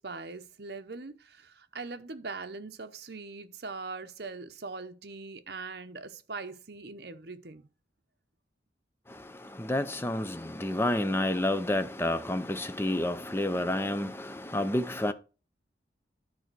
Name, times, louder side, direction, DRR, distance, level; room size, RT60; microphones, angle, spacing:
voice 1, 0.0-7.7, right 3 dB, 60° right, 0.8 m, -41 dB
voice 2, 9.1-15.1, left 1 dB, 15° left, 0.6 m, -30 dB
10.5 x 4.0 x 6.0 m
head